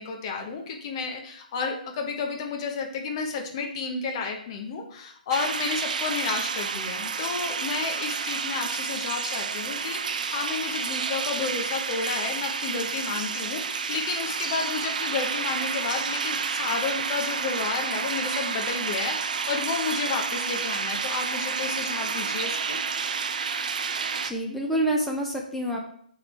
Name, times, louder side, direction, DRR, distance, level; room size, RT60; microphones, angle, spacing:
voice 1, 0.0-22.8, left 5 dB, 40° left, 2 dB, 1.2 m, -31 dB
sound 1, 5.3-24.3, right 5 dB, 60° right, 0.6 m, -30 dB
voice 2, 24.2-25.8, right 1 dB, 5° left, -2 dB, 0.9 m, -27 dB
9.5 x 3.8 x 3.4 m, 0.64 s
figure-of-eight pair, 140°, 5 cm